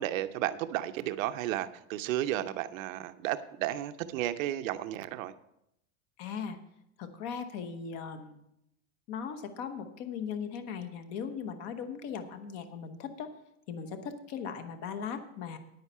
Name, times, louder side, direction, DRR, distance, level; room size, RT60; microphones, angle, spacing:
voice 1, 0.0-5.3, right 13 dB, 75° right, 11 dB, 0.8 m, -33 dB
voice 2, 6.2-6.6 7.0-8.4 9.1-13.3 13.7-15.6, left 6 dB, 35° left, 9 dB, 1.0 m, -38 dB
9.4 x 9.4 x 5.5 m, 0.80 s
supercardioid pair, 170°, 40 cm